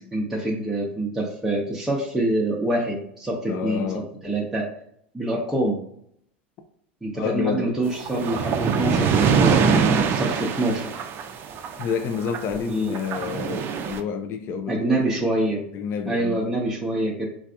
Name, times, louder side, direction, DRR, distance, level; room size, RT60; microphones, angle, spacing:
voice 1, 0.1-3.8 4.2-4.7 5.1-5.8 7.0-10.8 12.7-12.9 14.7-15.6 16.1-17.3, right 1 dB, 5° right, 0.7 m, -25 dB
voice 2, 3.5-4.1 7.1-7.8 11.8-15.0 15.7-16.5, left 6 dB, 45° left, 0.4 m, -29 dB
sound 1, 7.9-12.6 12.9-14.0, right 6 dB, 40° right, 0.4 m, -23 dB
3.2 x 2.4 x 2.5 m
hypercardioid pair, 100°, 6 cm